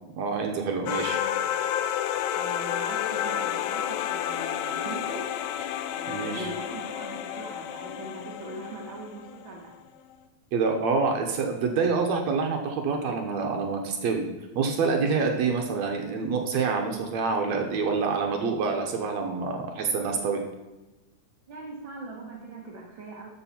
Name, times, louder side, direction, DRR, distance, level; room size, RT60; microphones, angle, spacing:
voice 1, 0.2-1.2 6.1-6.5 10.5-14.3 14.5-20.4, right 4 dB, 70° right, 3 dB, 2.2 m, -27 dB
sound 1, 0.9-9.5, left 10 dB, 85° left, 2.1 m, -30 dB
voice 2, 2.3-5.3 5.9-9.8 21.5-23.3, right 2 dB, 50° right, -1 dB, 1.7 m, -41 dB
12.5 x 7.2 x 4.4 m, 1.1 s
omnidirectional pair, 3.5 m